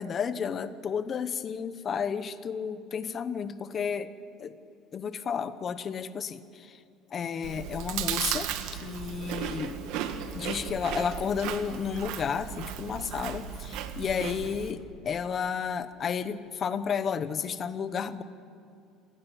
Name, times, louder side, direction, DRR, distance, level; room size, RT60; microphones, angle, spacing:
voice 1, 0.0-4.1 4.4-4.6 4.9-6.8 7.1-9.8 10.3-18.2, left 7 dB, 30° left, 13 dB, 1.0 m, -32 dB
Chewing mastication, 7.4-14.7, right 9 dB, 65° right, 1.8 m, -35 dB
27.0 x 16.0 x 9.9 m, 2.5 s
cardioid pair, 160°, 0 cm